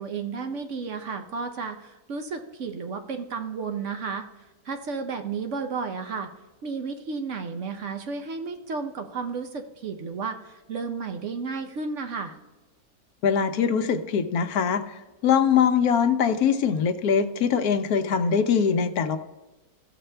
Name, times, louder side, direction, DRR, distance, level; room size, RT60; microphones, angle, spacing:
voice 1, 0.0-4.2 4.6-6.3 6.6-12.4, right 5 dB, 60° right, 6 dB, 1.0 m, -32 dB
voice 2, 13.2-14.9 15.2-19.2, left 7 dB, 75° left, 9 dB, 1.1 m, -22 dB
15.5 x 6.7 x 3.3 m, 1.1 s
omnidirectional pair, 1.6 m